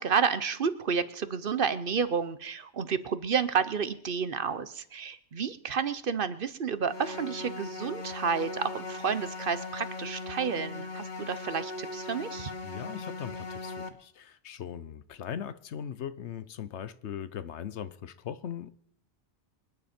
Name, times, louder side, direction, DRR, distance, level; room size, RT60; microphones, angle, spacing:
voice 1, 0.0-12.5, right 6 dB, 55° right, 1.0 m, -30 dB
sound 1, 6.9-13.9, left 2 dB, 45° left, 1.2 m, -39 dB
voice 2, 12.6-18.7, left 9 dB, 80° left, 1.1 m, -39 dB
26.0 x 10.0 x 4.4 m
omnidirectional pair, 1.2 m